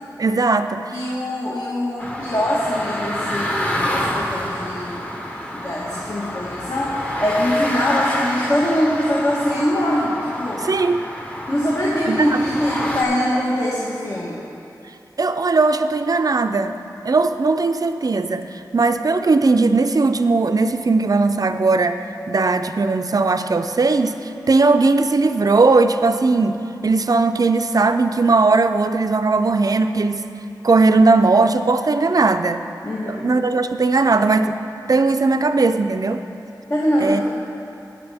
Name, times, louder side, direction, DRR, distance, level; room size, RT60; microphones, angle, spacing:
voice 1, 0.2-1.0 10.6-11.0 12.0-12.4 15.2-16.7 17.0-30.3 30.6-32.6 33.1-34.6 34.9-36.2 37.0-37.2, right 3 dB, 55° right, 9 dB, 0.4 m, -18 dB
voice 2, 0.9-5.0 5.5-10.6 11.5-14.4 32.8-33.3 36.7-37.2, equal, 50° left, -6 dB, 1.4 m, -22 dB
sound 1, 2.0-13.0, equal, 20° left, 1.0 m, -28 dB
19.0 x 6.4 x 3.5 m, 2.8 s
wide cardioid pair, 70°, 7 cm